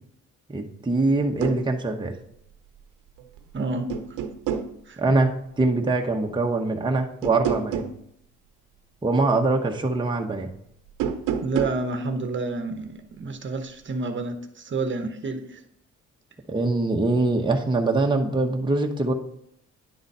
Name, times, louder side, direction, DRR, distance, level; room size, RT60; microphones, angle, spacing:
voice 1, 0.5-2.1 5.0-5.3 5.6-7.8 9.0-10.5 16.5-19.1, right 2 dB, 15° right, 2 dB, 1.0 m, -23 dB
sound 1, 1.2-1.6 3.2-3.5 3.9-4.7 7.2-8.0 10.9-11.8, right 8 dB, 90° right, 0.8 m, -28 dB
voice 2, 3.5-4.0 4.9-5.0 11.4-15.6, right 3 dB, 40° right, 7 dB, 1.0 m, -29 dB
10.5 x 3.9 x 5.5 m, 0.75 s
cardioid pair, 90°, 30 cm